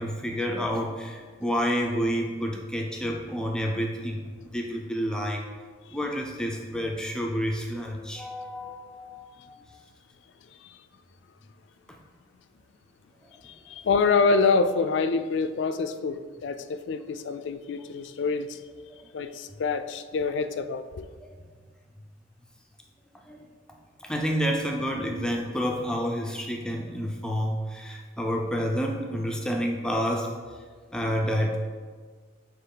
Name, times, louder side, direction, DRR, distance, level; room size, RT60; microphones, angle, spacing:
voice 1, 0.0-4.3 4.5-5.4 5.9-9.8 11.9-12.0 18.9-19.0 21.2-21.4 23.3-23.5 24.0-30.3 30.9-31.6, equal, 5° left, 0 dB, 0.4 m, -29 dB
voice 2, 13.4-18.6 19.1-21.1, left 4 dB, 70° left, 10 dB, 0.3 m, -26 dB
7.9 x 3.1 x 3.8 m, 1.5 s
head